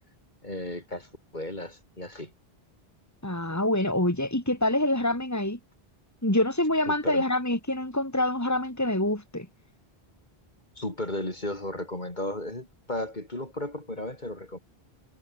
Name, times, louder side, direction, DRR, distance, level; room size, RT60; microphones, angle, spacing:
voice 1, 0.4-2.3 6.9-7.2 10.8-14.6, left 1 dB, 45° left, 4.5 m, -35 dB
voice 2, 3.2-5.6 6.2-9.5, left 1 dB, 15° left, 3.3 m, -26 dB
omnidirectional pair, 1.1 m